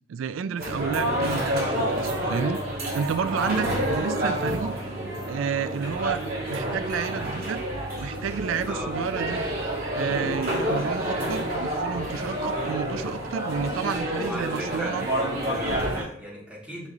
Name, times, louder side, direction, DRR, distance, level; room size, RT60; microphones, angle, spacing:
voice 1, 0.1-2.6 2.9-4.7 5.3-6.2 6.5-7.6 8.0-9.4 9.9-15.1, right 7 dB, 90° right, 14 dB, 0.4 m, -31 dB
sound 1, 0.6-16.0, right 1 dB, 50° right, 2.7 m, -28 dB
voice 2, 3.3-3.8 8.6-8.9 14.1-16.9, equal, 5° right, -7 dB, 3.1 m, -36 dB
6.5 x 6.0 x 3.9 m, 0.63 s
head